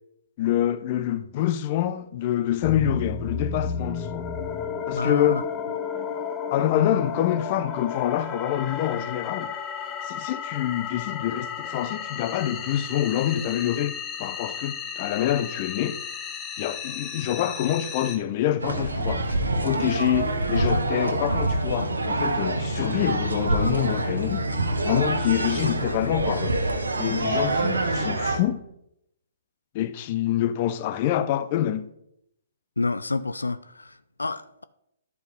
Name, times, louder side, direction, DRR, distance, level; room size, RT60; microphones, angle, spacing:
voice 1, 0.4-4.3 4.9-5.4 6.5-9.5 10.0-16.0 16.6-24.5 24.8-26.6 27.0-28.6 29.7-31.9, left 11 dB, 40° left, 0.6 m, -26 dB
sound 1, 2.6-18.2, left 6 dB, 20° left, 0.9 m, -33 dB
voice 2, 5.0-5.4 32.8-34.6, left 3 dB, 90° left, 0.4 m, -28 dB
sound 2, 18.6-28.4, right 2 dB, 85° right, 1.3 m, -26 dB
10.5 x 4.6 x 5.2 m
figure-of-eight pair, 130°, 0 cm